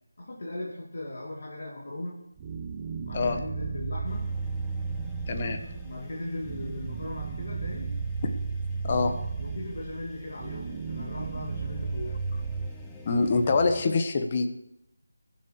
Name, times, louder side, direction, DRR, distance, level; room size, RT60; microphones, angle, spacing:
voice 1, 0.2-2.3 3.0-4.3 5.8-7.9 9.4-12.2, left 1 dB, 55° left, -2 dB, 2.7 m, -38 dB
sound 1, 2.4-12.7, right 5 dB, 25° right, 1.0 m, -34 dB
sound 2, 4.1-13.9, equal, 10° left, 1.0 m, -48 dB
voice 2, 5.3-5.6 8.8-9.2 13.0-14.5, left 3 dB, 30° left, 7 dB, 1.3 m, -25 dB
20.5 x 7.4 x 4.9 m, 0.84 s
figure-of-eight pair, 160°, 0 cm